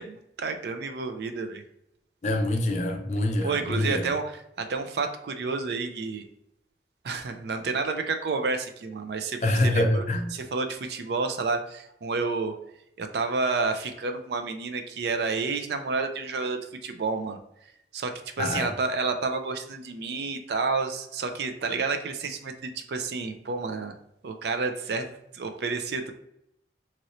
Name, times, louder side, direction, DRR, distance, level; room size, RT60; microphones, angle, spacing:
voice 1, 0.0-1.6 3.4-6.2 7.0-10.0 10.3-12.5 13.0-17.4 17.9-23.9 24.2-25.1 25.3-26.1, right 4 dB, 65° right, 0.4 m, -30 dB
voice 2, 2.2-4.0 9.4-10.2 18.4-18.7, left 1 dB, 40° left, 0.4 m, -25 dB
3.0 x 2.6 x 2.9 m
head